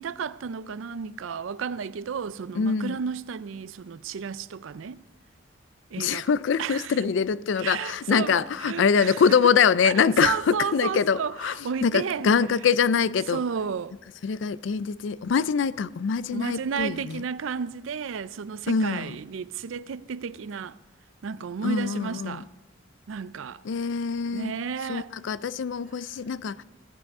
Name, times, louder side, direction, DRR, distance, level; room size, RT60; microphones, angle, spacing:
voice 1, 0.0-5.0 5.9-6.3 6.6-7.1 7.6-9.5 9.8-12.3 13.3-14.0 16.3-20.8 21.2-22.5 23.1-23.6 24.3-25.1, right 6 dB, 80° right, 0.4 m, -32 dB
voice 2, 2.5-3.0 6.0-11.6 11.8-13.4 14.2-17.2 18.7-19.2 21.6-22.4 23.6-24.5 24.9-26.6, left 6 dB, 65° left, 0.4 m, -24 dB
15.5 x 14.0 x 3.6 m
head